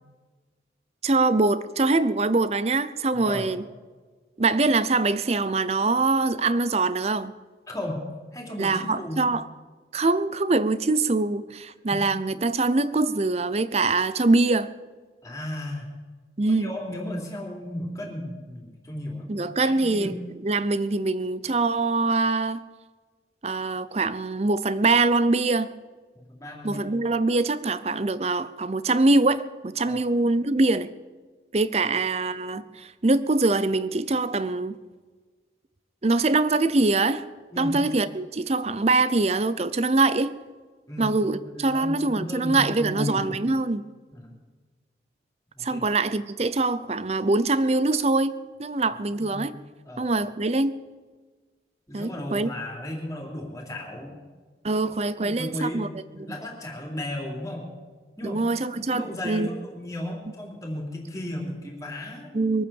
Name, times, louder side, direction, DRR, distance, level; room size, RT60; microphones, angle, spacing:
voice 1, 1.0-3.6 4.4-7.3 8.6-9.4 9.9-14.7 16.4-16.7 19.3-22.6 23.4-25.7 26.6-30.9 31.5-34.8 36.0-37.2 37.6-40.3 41.0-43.8 45.6-48.3 48.6-49.6 50.0-50.8 51.9-52.5 54.6-55.9 58.2-59.5 62.3-62.6, right 3 dB, 35° right, 0.6 m, -23 dB
voice 2, 3.1-3.5 7.7-8.0 8.3-9.3 11.9-12.0 15.2-15.9 16.5-20.1 26.1-26.8 29.8-30.0 31.8-31.9 37.5-37.8 40.9-43.4 44.1-44.3 45.5-45.8 49.2-49.6 49.8-50.1 51.9-54.2 55.2-57.7 58.2-58.4 58.8-62.6, left 1 dB, 20° left, 3.3 m, -35 dB
22.5 x 9.0 x 7.1 m
head